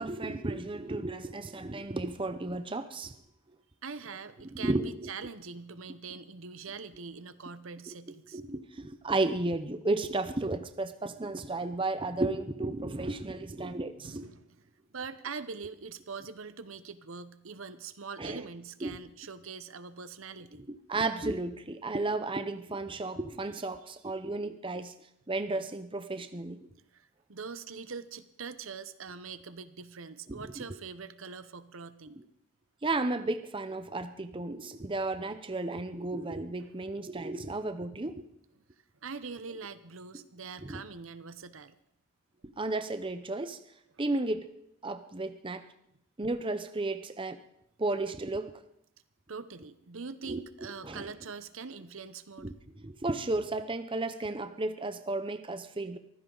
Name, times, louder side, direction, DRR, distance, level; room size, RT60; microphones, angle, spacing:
voice 1, 0.0-3.1 4.5-5.1 7.9-8.0 8.3-14.3 18.2-18.4 18.8-19.0 20.6-24.9 25.3-26.7 30.3-30.6 32.8-38.2 40.6-40.8 42.6-43.6 44.0-44.5 44.8-45.6 46.2-47.4 47.8-48.5 50.3-50.4 50.8-51.1 52.4-56.0, right 2 dB, 25° right, 10 dB, 0.7 m, -33 dB
voice 2, 3.8-8.4 14.0-14.7 14.9-20.6 26.9-32.2 36.6-36.7 39.0-41.8 49.3-52.5, right 5 dB, 70° right, 13 dB, 0.9 m, -43 dB
24.0 x 15.5 x 3.9 m, 0.75 s
head